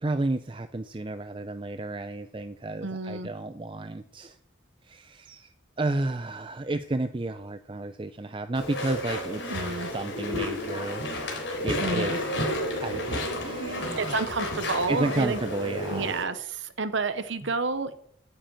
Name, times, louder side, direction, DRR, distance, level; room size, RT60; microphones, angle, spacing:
voice 1, 0.0-4.4 4.8-11.3 11.6-12.3 12.8-14.1 14.9-16.2 17.4-17.5, right 2 dB, 25° right, 10 dB, 0.5 m, -32 dB
voice 2, 2.8-3.3 9.5-9.9 11.8-12.2 14.0-15.4 15.9-17.9, right 4 dB, 70° right, 10 dB, 0.8 m, -30 dB
Walk footsteps / Chatter / Squeak, 8.5-16.2, left 1 dB, 70° left, 3.8 m, -31 dB
9.3 x 7.8 x 8.8 m, 0.67 s
head